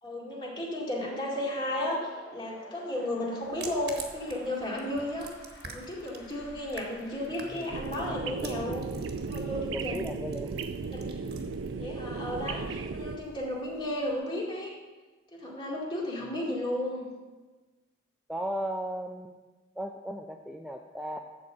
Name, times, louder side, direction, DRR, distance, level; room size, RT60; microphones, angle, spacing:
voice 1, 0.0-5.3 5.7-8.9 9.3-10.1 10.9-11.2 11.8-14.7 15.3-17.1, left 1 dB, 25° left, -3 dB, 2.1 m, -34 dB
sound 1, 1.2-7.8, left 1 dB, 75° left, 3.4 m, -52 dB
sound 2, 3.4-14.2, right 4 dB, 55° right, 1.3 m, -49 dB
sound 3, 7.7-13.2, right 4 dB, 85° right, 0.5 m, -35 dB
voice 2, 8.0-8.8 9.6-10.7 11.0-11.1 16.3-16.4 18.3-19.3 19.8-21.2, right 1 dB, 5° right, 2 dB, 0.4 m, -37 dB
12.0 x 4.1 x 7.5 m, 1.2 s
head